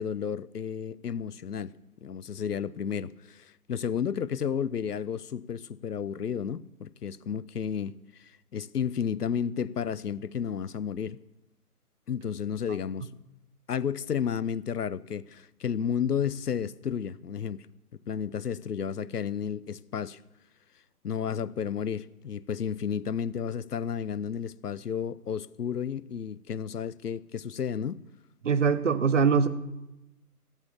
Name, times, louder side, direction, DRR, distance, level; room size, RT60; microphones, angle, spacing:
voice 1, 0.0-1.7 2.0-11.2 12.1-13.1 13.7-17.7 18.1-20.2 21.0-28.0, left 7 dB, 80° left, 0.6 m, -32 dB
voice 2, 28.4-29.5, right 6 dB, 50° right, 1.0 m, -22 dB
16.0 x 7.3 x 7.1 m
figure-of-eight pair, 140°, 46 cm